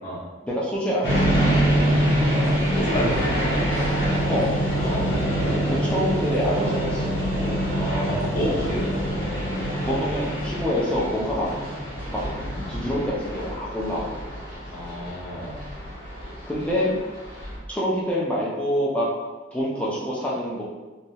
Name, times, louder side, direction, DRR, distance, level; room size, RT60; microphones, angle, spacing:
voice 1, 0.4-1.8 4.3-4.5 5.4-7.1 9.9-11.5 12.1-12.2 12.7-14.2 16.5-16.9 17.7-19.1 19.5-20.6, equal, 5° left, -6 dB, 0.4 m, -26 dB
sound 1, 1.0-17.6, right 1 dB, 85° left, 1.0 m, -25 dB
voice 2, 2.7-3.6 4.8-5.1 7.7-9.1 14.7-15.6, equal, 45° left, -9 dB, 0.7 m, -29 dB
2.2 x 2.0 x 2.7 m, 1.3 s
head